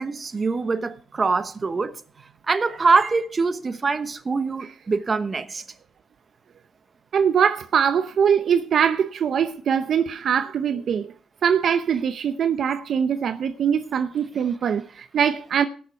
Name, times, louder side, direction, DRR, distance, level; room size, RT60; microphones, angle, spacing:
voice 1, 0.0-2.0 2.5-5.6, right 4 dB, 30° right, 1.1 m, -24 dB
voice 2, 7.1-11.1 11.4-15.6, right 7 dB, 60° right, 0.7 m, -22 dB
18.0 x 7.0 x 4.6 m
cardioid pair, 90°, 0 cm